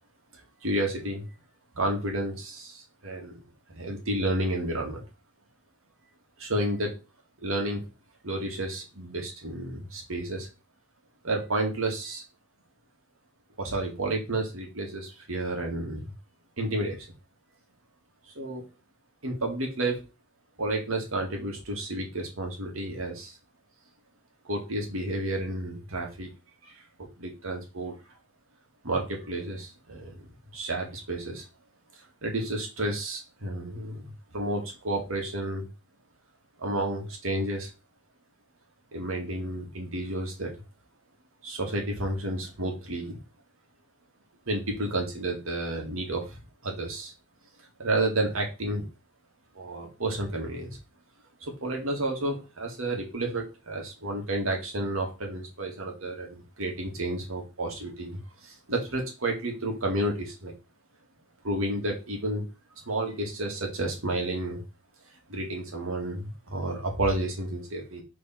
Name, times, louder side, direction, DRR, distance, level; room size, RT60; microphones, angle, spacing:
voice 1, 0.6-1.3 1.8-3.4 3.7-5.0 6.4-7.0 7.4-7.9 8.2-10.5 11.2-12.2 13.6-16.1 16.6-17.1 18.4-18.7 19.2-20.0 20.6-23.4 24.4-26.3 26.6-27.9 28.8-30.2 30.5-31.4 32.2-35.7 36.6-37.7 38.9-40.5 41.4-43.2 44.5-47.1 47.8-48.8 49.6-50.7 51.4-60.5 61.4-62.4 62.9-64.6 65.3-68.0, right 1 dB, 70° right, 1 dB, 2.2 m, -31 dB
4.9 x 3.9 x 5.8 m, 0.29 s
head